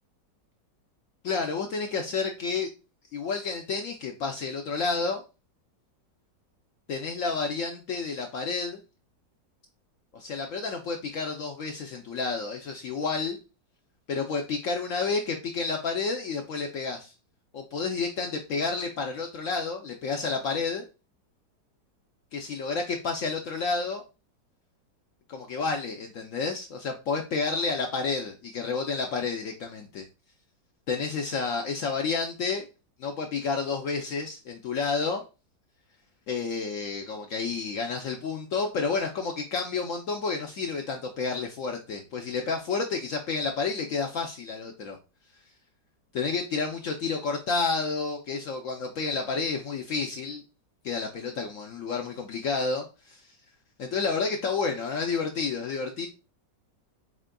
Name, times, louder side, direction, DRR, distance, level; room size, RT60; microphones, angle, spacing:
voice 1, 1.2-2.7 3.1-5.2 6.9-8.8 10.1-13.4 14.1-17.1 17.5-20.9 22.3-24.0 25.3-30.0 30.9-32.7 33.0-35.2 36.3-45.0 46.1-50.4 50.8-53.2 53.8-56.1, left 4 dB, 70° left, 3 dB, 0.7 m, -30 dB
4.3 x 3.7 x 2.2 m, 0.29 s
omnidirectional pair, 1.9 m